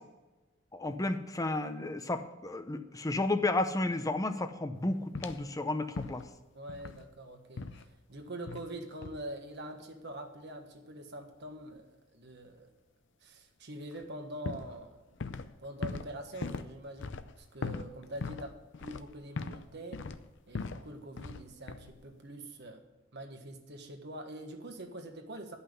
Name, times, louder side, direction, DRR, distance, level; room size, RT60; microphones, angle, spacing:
voice 1, 0.7-6.2, left 2 dB, 15° left, 8 dB, 0.7 m, -32 dB
sound 1, 5.2-5.5 6.0-6.4 6.7-7.1 7.6-7.9 8.5-8.7 9.0-9.3 13.9-14.1 14.5-15.6 15.8-19.7 19.9-20.9 21.2-21.4 21.7-22.0, left 4 dB, 60° left, 0.5 m, -40 dB
voice 2, 6.5-12.7 13.2-15.0 15.6-20.0 20.5-22.8 23.1-25.6, right 1 dB, 55° right, 5 dB, 1.4 m, -44 dB
11.5 x 5.7 x 8.0 m, 1.1 s
head